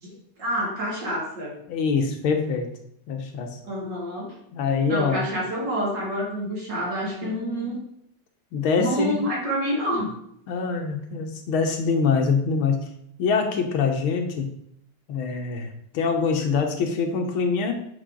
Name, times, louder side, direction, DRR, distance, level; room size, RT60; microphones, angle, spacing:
voice 1, 0.0-1.5 3.6-4.3 4.9-7.8 8.8-10.1, equal, 55° right, -4 dB, 3.1 m, -28 dB
voice 2, 1.7-2.7 3.1-3.6 4.5-5.2 7.2-7.7 8.5-9.2 10.5-12.8 13.2-14.5 15.1-15.7 15.9-17.7, left 5 dB, 80° left, 4 dB, 1.9 m, -24 dB
8.4 x 5.7 x 3.8 m, 0.72 s
omnidirectional pair, 2.2 m